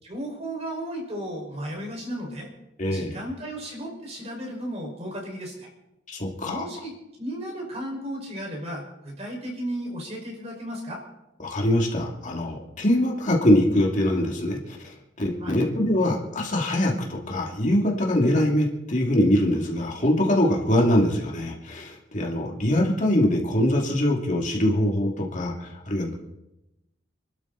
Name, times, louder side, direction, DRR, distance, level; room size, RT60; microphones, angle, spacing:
voice 1, 0.0-2.5 2.9-5.7 6.4-6.9 7.2-11.0 15.4-15.6, equal, 35° right, -1 dB, 5.2 m, -34 dB
voice 2, 2.8-3.2 6.1-6.6 11.4-26.1, left 1 dB, 40° left, -1 dB, 2.6 m, -23 dB
28.0 x 12.5 x 4.1 m, 0.92 s
head